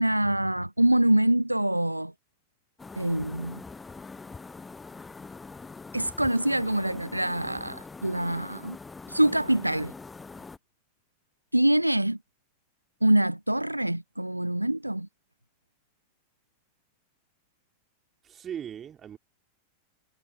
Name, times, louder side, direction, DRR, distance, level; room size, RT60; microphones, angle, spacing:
voice 1, 0.0-2.1 3.0-3.6 5.9-8.8 9.1-9.9 11.5-12.2 13.0-15.1, right 1 dB, 85° right, 0.5 m, -25 dB
sound 1, 2.8-10.6, left 4 dB, 10° left, 0.8 m, -44 dB
voice 2, 18.2-19.2, right 9 dB, 25° right, 3.3 m, -38 dB
figure-of-eight pair, 90°, 0 cm